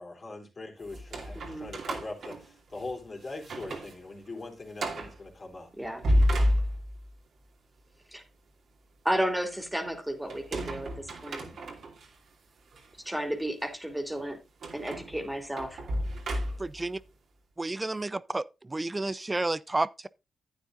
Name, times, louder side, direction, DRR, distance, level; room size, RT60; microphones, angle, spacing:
voice 1, 0.0-5.7, left 2 dB, 40° left, 3.5 m, -41 dB
sound 1, 0.9-3.0 3.4-4.0 4.3-4.4 4.8-5.2 5.8-7.1 10.3-12.1 12.7-12.9 14.6-16.9, equal, 70° right, 2.5 m, -30 dB
voice 2, 1.3-1.7 5.8-6.0 8.1-8.2 9.0-11.5 13.0-14.4 14.7-15.8, right 1 dB, 10° right, 2.7 m, -32 dB
voice 3, 16.6-17.0 17.6-20.1, right 2 dB, 25° right, 0.5 m, -31 dB
11.0 x 9.1 x 2.6 m
supercardioid pair, 50°, 0 cm